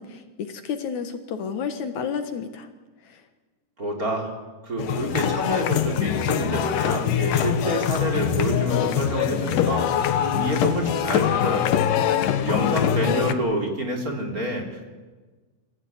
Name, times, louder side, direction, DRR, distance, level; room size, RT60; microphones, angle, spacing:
voice 1, 0.0-2.7 3.0-3.2, left 6 dB, 70° left, 8 dB, 2.6 m, -31 dB
voice 2, 3.8-4.3 4.6-9.9 10.2-11.9 12.4-14.9, right 1 dB, 25° right, 1 dB, 3.8 m, -28 dB
sound 1, 4.8-13.3, left 10 dB, 90° left, 2.8 m, -23 dB
25.5 x 16.0 x 9.6 m, 1.3 s
omnidirectional pair, 3.7 m